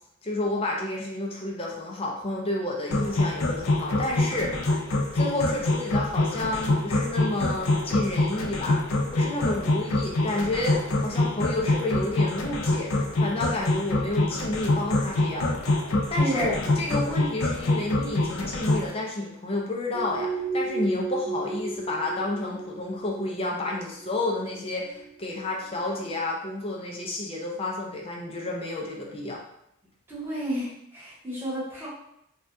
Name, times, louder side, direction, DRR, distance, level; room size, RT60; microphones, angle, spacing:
voice 1, 0.2-4.6 5.1-8.8 9.1-15.5 16.1-29.4, left 2 dB, 25° left, -2 dB, 0.5 m, -30 dB
sound 1, 2.9-18.9, left 2 dB, 85° left, 0.5 m, -25 dB
voice 2, 9.4-9.8 16.2-16.7 30.1-31.9, equal, 10° right, -10 dB, 1.1 m, -32 dB
sound 2, 19.9-26.1, right 3 dB, 35° right, 0.3 m, -34 dB
3.3 x 2.3 x 2.6 m, 0.78 s
head